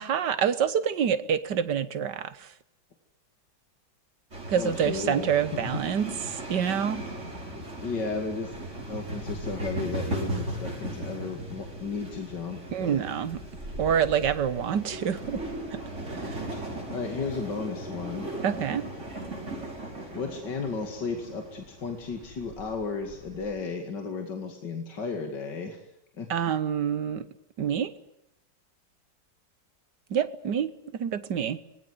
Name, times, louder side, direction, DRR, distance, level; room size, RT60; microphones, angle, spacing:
voice 1, 0.0-2.5 4.5-7.0 12.7-13.4 13.8-15.4 15.7-15.8 16.1-16.4 18.4-18.9 26.3-27.3 27.6-27.9 30.1-31.6, right 8 dB, 70° right, 13 dB, 1.8 m, -27 dB
sound 1, 4.3-23.5, right 1 dB, 40° right, 6.0 m, -37 dB
voice 2, 4.6-5.8 7.8-8.5 8.9-13.0 16.5-18.3 20.1-25.8 26.2-26.3, left 4 dB, 70° left, 4 dB, 2.9 m, -34 dB
25.5 x 20.5 x 9.6 m, 0.77 s
omnidirectional pair, 2.0 m